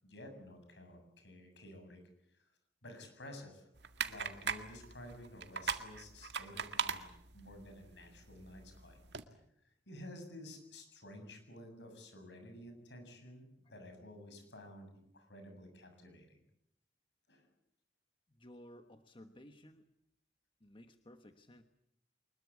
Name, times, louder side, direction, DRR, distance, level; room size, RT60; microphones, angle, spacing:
voice 1, 0.0-2.0 2.3-2.5 2.8-3.7 4.0-7.1 7.3-9.0 9.9-16.4 17.3-17.5, left 1 dB, 70° left, 6 dB, 7.6 m, -52 dB
sound 1, 3.8-9.2, right 6 dB, 70° right, 1.9 m, -41 dB
voice 2, 18.3-19.8 20.6-21.6, left 1 dB, 30° left, 7 dB, 1.3 m, -56 dB
24.5 x 21.5 x 8.4 m, 0.76 s
head